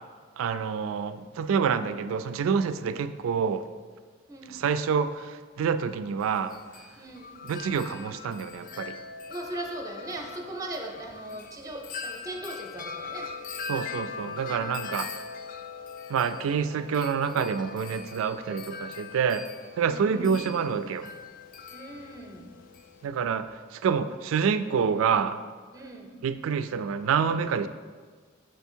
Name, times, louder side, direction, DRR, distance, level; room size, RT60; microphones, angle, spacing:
voice 1, 0.4-3.7 4.5-6.5 7.4-9.0 13.7-15.1 16.1-19.4 19.8-21.1 23.0-25.4 26.2-27.7, right 6 dB, 80° right, 12 dB, 0.3 m, -27 dB
Wind chime, 6.2-23.1, left 5 dB, 45° left, 0.3 m, -41 dB
voice 2, 7.0-7.3 9.3-13.3 14.6-14.9 19.9-20.7 21.7-22.5 25.7-26.1, right 1 dB, 15° right, 2 dB, 0.6 m, -39 dB
6.3 x 3.5 x 4.4 m, 1.5 s
head